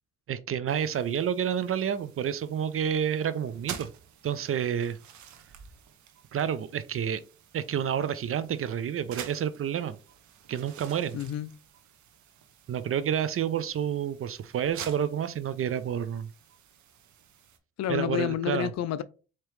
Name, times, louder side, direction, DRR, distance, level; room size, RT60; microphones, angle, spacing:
voice 1, 0.3-3.9 4.2-5.0 6.3-7.2 7.5-10.0 10.5-11.2 12.7-16.3 17.9-18.7, right 8 dB, 50° right, 0.4 m, -29 dB
sound 1, 0.7-17.6, right 8 dB, 80° right, 0.8 m, -49 dB
voice 2, 11.1-11.5 17.8-19.0, left 11 dB, 65° left, 0.4 m, -29 dB
4.7 x 2.9 x 3.2 m
cardioid pair, 70°, 29 cm